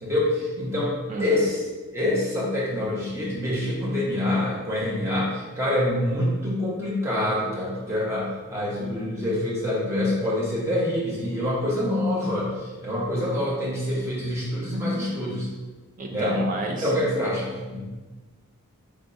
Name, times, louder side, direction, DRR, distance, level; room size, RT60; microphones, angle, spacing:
voice 1, 0.0-0.9 1.2-1.6 1.9-15.5 16.1-17.9, left 1 dB, 10° right, -7 dB, 0.9 m, -26 dB
voice 2, 16.0-16.9, right 2 dB, 35° right, 0 dB, 0.5 m, -31 dB
4.7 x 3.6 x 2.7 m, 1.2 s
head